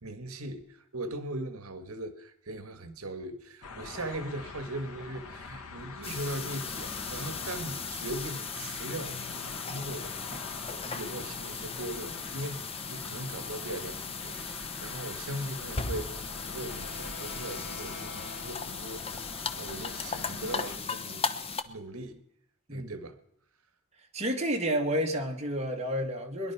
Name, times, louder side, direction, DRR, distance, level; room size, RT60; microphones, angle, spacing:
voice 1, 0.0-21.3 21.6-22.2 22.7-23.2, right 1 dB, 70° right, 10 dB, 1.5 m, -40 dB
sound 1, 3.6-20.8, left 4 dB, 85° left, 1.7 m, -44 dB
sound 2, 6.0-21.6, left 5 dB, 25° left, 0.9 m, -37 dB
Wind instrument woodwind instrument, 15.8-19.4, left 3 dB, 50° left, 5.8 m, -47 dB
voice 2, 24.1-26.5, equal, 30° right, 2 dB, 2.3 m, -30 dB
21.5 x 11.5 x 5.9 m, 0.80 s
head